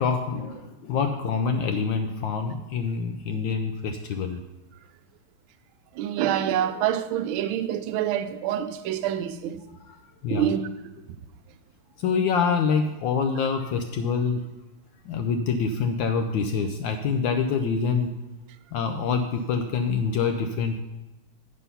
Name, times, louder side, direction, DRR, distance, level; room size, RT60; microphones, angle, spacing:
voice 1, 0.0-4.4 9.9-10.5 12.0-14.5 15.1-18.2 18.7-20.8, left 5 dB, 75° left, 1.2 m, -26 dB
voice 2, 6.0-9.6 10.3-10.6, right 10 dB, 75° right, 1.3 m, -26 dB
8.3 x 6.8 x 5.5 m
omnidirectional pair, 2.4 m